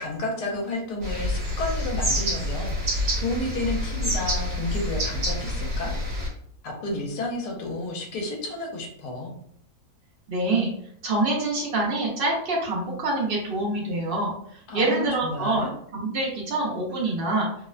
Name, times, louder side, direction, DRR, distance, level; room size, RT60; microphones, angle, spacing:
voice 1, 0.0-5.9 6.6-9.3 14.7-15.7, left 2 dB, 85° left, 0 dB, 1.2 m, -31 dB
sound 1, 1.0-6.3, equal, 40° right, 1.1 m, -27 dB
voice 2, 10.3-10.7 11.0-15.7 15.9-17.5, right 2 dB, 75° right, -3 dB, 0.5 m, -26 dB
2.9 x 2.0 x 2.4 m, 0.68 s
omnidirectional pair, 1.7 m